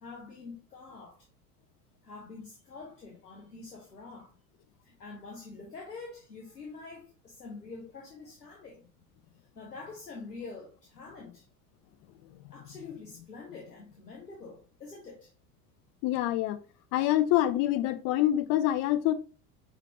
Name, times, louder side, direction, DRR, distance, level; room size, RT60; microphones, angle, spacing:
voice 1, 0.0-1.3 2.0-4.4 4.8-8.9 9.5-11.4 12.5-15.3, left 4 dB, 85° left, 0.8 m, -46 dB
voice 2, 16.0-16.6 16.9-19.1, left 13 dB, 35° left, 0.5 m, -26 dB
4.9 x 3.2 x 2.9 m
figure-of-eight pair, 75°, 46 cm